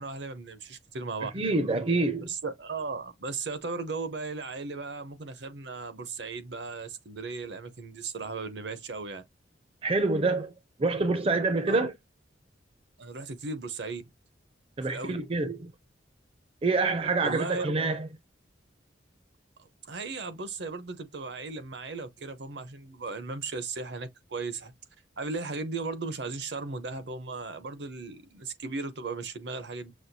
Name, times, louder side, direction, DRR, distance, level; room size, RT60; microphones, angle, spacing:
voice 1, 0.0-1.3 2.2-9.2 11.7-11.9 13.0-14.0 14.9-15.2 17.2-17.8 19.6-24.7 25.2-29.9, right 3 dB, 65° right, 0.8 m, -36 dB
voice 2, 1.3-2.3 9.8-10.5 10.8-11.9 14.8-15.7 16.6-18.1, right 3 dB, 30° right, 0.5 m, -26 dB
6.2 x 2.3 x 2.7 m
head